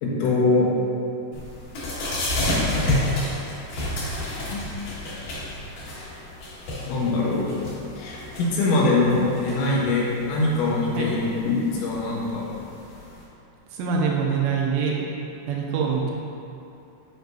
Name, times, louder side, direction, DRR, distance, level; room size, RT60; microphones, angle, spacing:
voice 1, 0.0-0.7 4.5-4.7 6.8-7.5 8.0-12.4, left 3 dB, 80° left, -4 dB, 3.4 m, -23 dB
sound 1, 1.3-13.2, left 1 dB, 55° left, 2.7 m, -30 dB
voice 2, 13.7-15.1 15.5-16.1, right 6 dB, 80° right, -2 dB, 2.8 m, -24 dB
10.0 x 5.9 x 2.7 m, 2.6 s
omnidirectional pair, 5.4 m